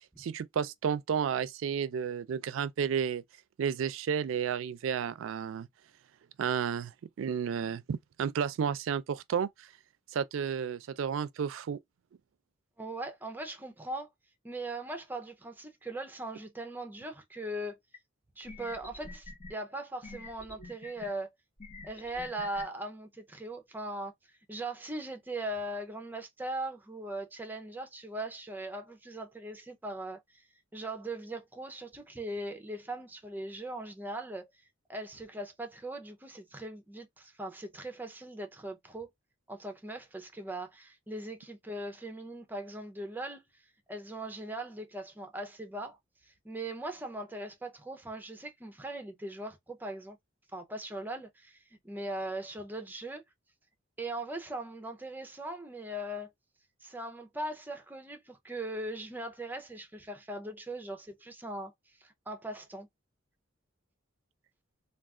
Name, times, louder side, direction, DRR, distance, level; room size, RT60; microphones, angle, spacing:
voice 1, 0.2-3.2 3.6-5.7 6.4-6.9 7.2-9.7 10.1-11.8, right 7 dB, 80° right, 0.3 m, -32 dB
voice 2, 12.8-14.1 14.4-17.8 18.4-21.3 21.8-24.1 24.5-30.4 30.7-34.5 34.9-39.1 39.5-43.4 43.9-46.0 46.3-50.2 50.5-51.6 51.8-53.2 54.0-56.3 56.8-61.7 62.0-62.9, right 1 dB, 10° right, 0.5 m, -40 dB
sound 1, 17.9-18.0 18.5-19.5 20.0-21.1 21.6-22.6, left 3 dB, 40° left, 0.8 m, -46 dB
2.3 x 2.3 x 3.5 m
head